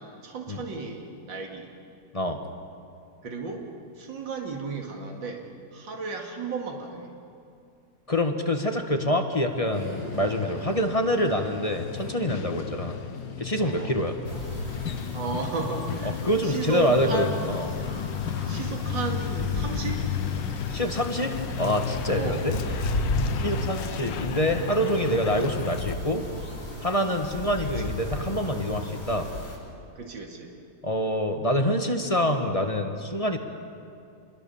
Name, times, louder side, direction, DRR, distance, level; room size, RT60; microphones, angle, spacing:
voice 1, 0.0-1.7 3.2-3.7 4.0-5.5 5.7-7.1 13.6-14.0 15.1-17.4 18.5-20.0 22.1-22.4 27.6-28.0 30.0-30.5, right 4 dB, 80° right, 2 dB, 2.9 m, -33 dB
voice 2, 8.1-13.0 13.4-14.2 16.2-17.7 20.7-21.3 21.6-22.6 23.4-26.2 26.8-29.3 30.8-33.4, equal, 20° left, 4 dB, 1.2 m, -26 dB
Moderately Crowded Coffee Shop Ambiance, 9.3-17.6, equal, 35° right, 5.4 m, -43 dB
Truck, 9.7-25.9, left 9 dB, 75° left, 1.6 m, -34 dB
sound 1, 14.2-29.6, left 1 dB, 50° left, 5.8 m, -34 dB
27.0 x 21.5 x 7.1 m, 2.5 s
omnidirectional pair, 2.0 m